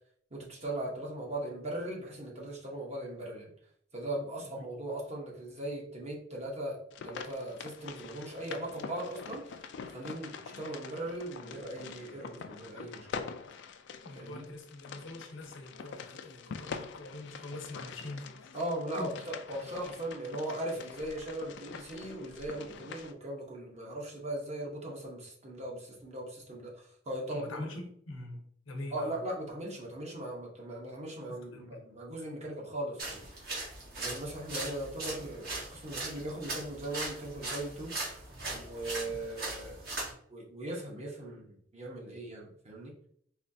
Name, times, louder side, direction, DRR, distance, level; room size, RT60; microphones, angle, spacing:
voice 1, 0.3-3.5 3.9-9.6 9.8-13.3 14.2-14.5 18.5-27.7 28.9-33.5 34.0-38.2 38.5-40.0 40.3-42.9, right 1 dB, 35° right, -2 dB, 1.0 m, -39 dB
sound 1, 6.9-23.1, left 6 dB, 60° left, 0.3 m, -45 dB
voice 2, 14.0-18.5 18.9-19.1 27.3-29.2 31.3-31.8, left 1 dB, 85° left, 3 dB, 0.9 m, -44 dB
sound 2, 33.0-40.1, right 2 dB, 50° right, 1.3 m, -39 dB
4.1 x 3.1 x 2.7 m, 0.65 s
head